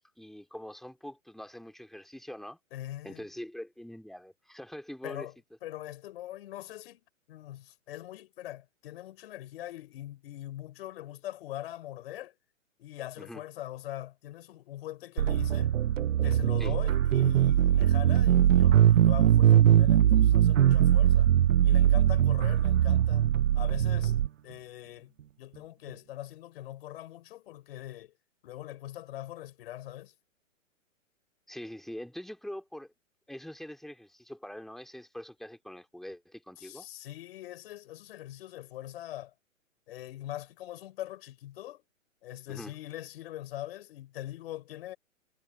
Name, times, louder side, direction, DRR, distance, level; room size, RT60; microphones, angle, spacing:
voice 1, 0.0-2.6 3.0-5.3 13.2-13.4 16.6-16.8 31.5-32.9 33.3-36.9 42.5-42.7, equal, ahead, 3.7 m, -43 dB
voice 2, 2.7-3.2 5.0-5.3 5.6-7.0 7.3-12.3 12.8-15.7 16.2-21.3 21.6-23.3 23.5-24.2 24.4-25.1 25.4-28.1 28.4-30.1 36.6-39.3 39.9-41.8 42.2-45.0, left 14 dB, 45° left, 4.7 m, -42 dB
sound 1, 15.2-24.3, right 10 dB, 70° right, 0.6 m, -22 dB
figure-of-eight pair, 120°, 39 cm